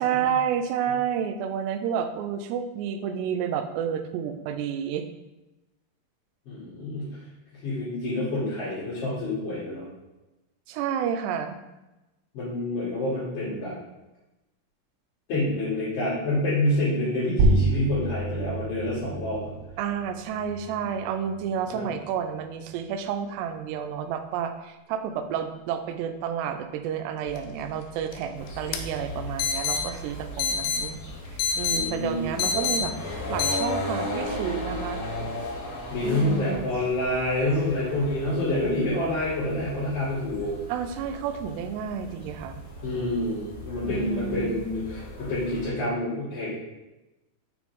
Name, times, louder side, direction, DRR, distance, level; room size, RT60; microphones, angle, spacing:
voice 1, 0.0-5.1 10.7-11.6 19.8-31.0 31.6-35.0 36.0-36.7 40.7-42.6 43.8-44.6, right 8 dB, 90° right, 8 dB, 2.7 m, -30 dB
voice 2, 6.5-7.2 7.6-9.8 12.3-13.7 15.3-19.5 21.7-21.9 31.7-32.5 35.9-40.5 42.8-46.5, left 1 dB, 55° left, -14 dB, 4.2 m, -27 dB
sound 1, 17.4-22.5, right 2 dB, 75° right, 2.5 m, -28 dB
sound 2, 27.3-33.6, left 6 dB, 85° left, 2.0 m, -30 dB
sound 3, 28.3-45.7, left 1 dB, 35° left, 2.7 m, -37 dB
7.4 x 6.0 x 3.7 m, 1.0 s
omnidirectional pair, 4.8 m